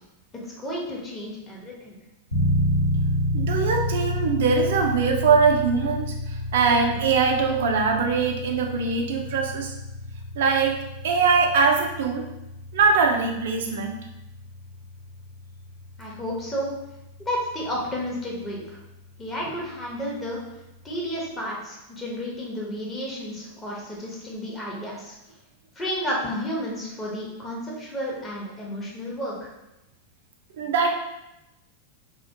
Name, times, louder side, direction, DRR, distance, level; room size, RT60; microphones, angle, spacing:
voice 1, 0.3-2.0 16.0-16.7 17.2-18.8 19.2-20.4 20.8-25.2 25.8-29.5, equal, 15° left, -4 dB, 0.7 m, -32 dB
sound 1, 2.3-19.1, left 1 dB, 85° left, 0.9 m, -30 dB
voice 2, 3.3-9.7 10.4-10.8 11.0-12.2 12.7-14.0 30.6-30.9, right 5 dB, 55° right, 3 dB, 0.4 m, -22 dB
2.4 x 2.1 x 2.6 m, 0.93 s
figure-of-eight pair, 90°, 0 cm